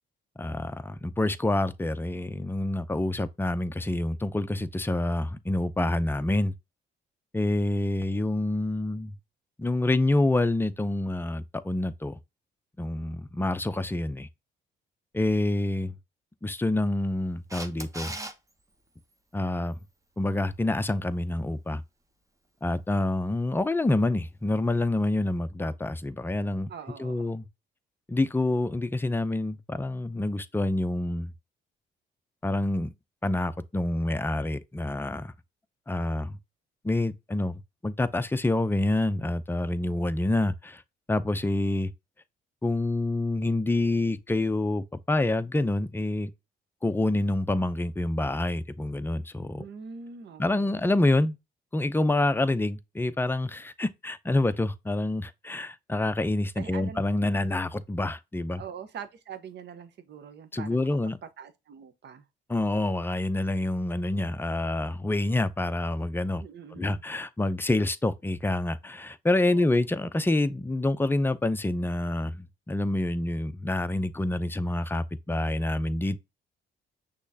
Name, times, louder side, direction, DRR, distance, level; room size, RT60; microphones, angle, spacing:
voice 1, 0.4-6.5 7.3-9.1 9.6-12.2 12.8-14.3 15.1-15.9 16.4-18.2 19.3-19.8 20.2-21.8 22.6-26.7 27.0-27.5 28.1-31.3 32.4-32.9 33.2-35.3 35.9-36.4 36.8-40.8 41.1-41.9 42.6-46.3 46.8-49.6 50.4-51.4 51.7-58.6 60.5-61.2 62.5-66.4 66.8-76.2, left 2 dB, 10° left, 0.5 m, -27 dB
Camera, 17.5-18.3 25.1-25.2, right 2 dB, 15° right, 0.9 m, -37 dB
voice 2, 26.7-27.4 49.6-50.9 56.6-57.0 57.3-57.6 58.6-60.9 61.2-62.2 66.4-67.0 69.5-69.8, right 7 dB, 60° right, 0.9 m, -43 dB
6.2 x 3.1 x 2.7 m
cardioid pair, 90°, 20 cm